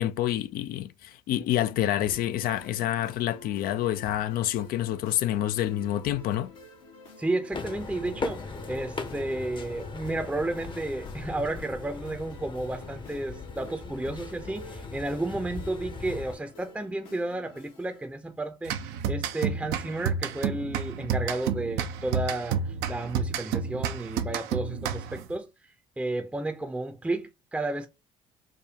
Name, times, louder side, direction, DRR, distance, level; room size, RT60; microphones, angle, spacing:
voice 1, 0.0-6.5, left 12 dB, 60° left, 0.4 m, -28 dB
sound 1, 2.1-18.1, left 3 dB, 80° left, 1.3 m, -48 dB
voice 2, 7.2-25.7 26.0-27.9, right 2 dB, 10° right, 0.6 m, -32 dB
sound 2, 7.5-16.3, left 4 dB, 30° left, 0.7 m, -39 dB
sound 3, 18.6-25.3, right 7 dB, 70° right, 0.5 m, -30 dB
5.0 x 2.2 x 2.8 m
hypercardioid pair, 60°, 17 cm